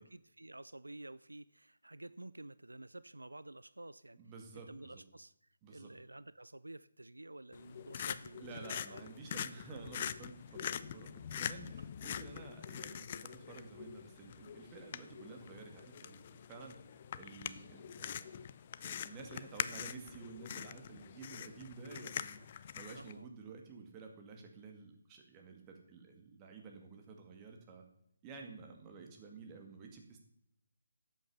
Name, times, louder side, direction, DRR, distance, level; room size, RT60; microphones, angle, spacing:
voice 1, 0.0-4.2 4.5-5.3 5.7-9.0 22.9-23.3, right 2 dB, 90° right, 18 dB, 0.4 m, -51 dB
voice 2, 4.2-5.0 5.6-5.9 8.4-18.5 18.8-27.9 28.2-30.2, right 4 dB, 20° right, 3 dB, 2.2 m, -52 dB
sound 1, 7.5-23.1, left 9 dB, 35° left, 0.5 m, -44 dB
12.0 x 8.4 x 5.5 m, 0.74 s
figure-of-eight pair, 150°, 0 cm